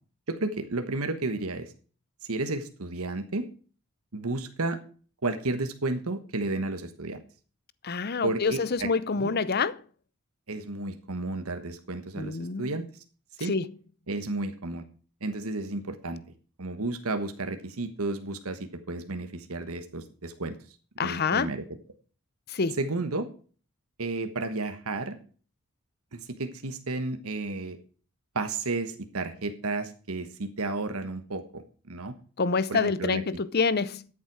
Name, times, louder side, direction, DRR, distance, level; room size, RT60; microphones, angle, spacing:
voice 1, 0.3-1.7 2.3-3.5 4.1-4.8 5.2-7.2 8.2-8.9 9.2-9.3 10.5-13.0 13.4-13.5 14.1-14.9 15.2-16.2 16.6-20.6 21.0-21.6 22.8-23.3 24.0-25.2 26.1-27.8 28.3-32.2 32.7-33.2, right 2 dB, 75° right, 1.3 m, -32 dB
voice 2, 7.8-9.8 12.2-12.8 13.4-13.7 21.0-21.5 22.5-22.8 32.4-34.1, left 4 dB, 45° left, 0.7 m, -27 dB
12.5 x 7.5 x 4.7 m
head